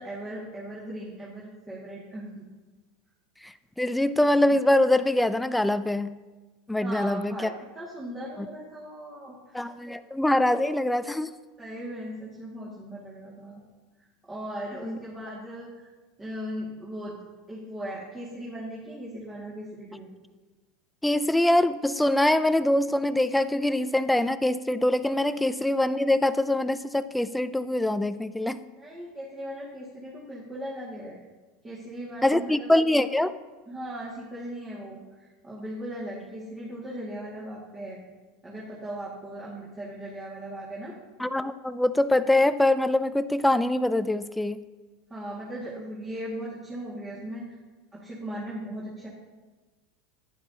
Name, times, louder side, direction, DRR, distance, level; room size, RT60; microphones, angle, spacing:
voice 1, 0.0-2.5 6.8-10.0 11.6-13.6 14.2-15.9 16.2-17.2 17.5-20.1 28.8-31.2 31.6-32.7 33.7-38.0 38.4-41.0 45.1-47.5 47.9-49.1, right 1 dB, 15° right, -7 dB, 2.0 m, -38 dB
voice 2, 3.4-6.1 6.7-7.5 9.5-11.3 14.8-15.0 21.0-28.6 32.2-33.3 41.2-44.6, left 1 dB, 5° left, 13 dB, 0.4 m, -24 dB
10.5 x 10.0 x 2.8 m, 1.3 s
supercardioid pair, 115°, 0 cm